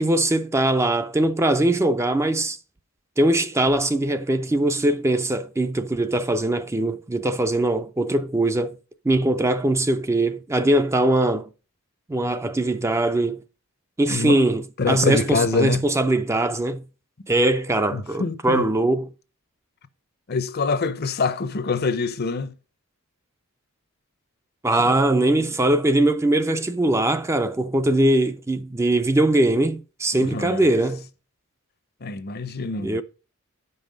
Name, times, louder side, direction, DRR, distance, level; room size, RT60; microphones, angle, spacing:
voice 1, 0.0-2.6 3.2-8.8 9.0-11.5 12.1-13.4 14.0-16.8 17.3-19.1 24.6-31.0 32.8-33.0, right 1 dB, 15° right, 0.4 m, -21 dB
voice 2, 14.8-15.8 17.9-18.7 20.3-22.5 24.8-24.9 30.1-30.7 32.0-33.0, left 4 dB, 45° left, 0.6 m, -25 dB
9.6 x 5.5 x 5.1 m
head